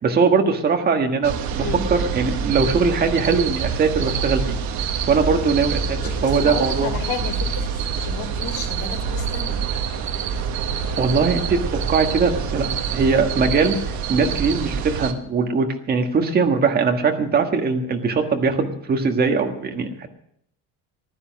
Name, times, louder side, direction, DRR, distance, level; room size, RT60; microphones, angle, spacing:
voice 1, 0.0-1.6 1.9-4.6 5.1-6.9 11.0-13.8 14.1-20.1, right 5 dB, 25° right, 4 dB, 1.5 m, -21 dB
sound 1, 1.2-15.1, right 6 dB, 55° right, 1.3 m, -26 dB
voice 2, 6.0-9.6, left 6 dB, 75° left, 4 dB, 3.6 m, -32 dB
15.5 x 11.5 x 6.2 m, 0.68 s
cardioid pair, 180°, 34 cm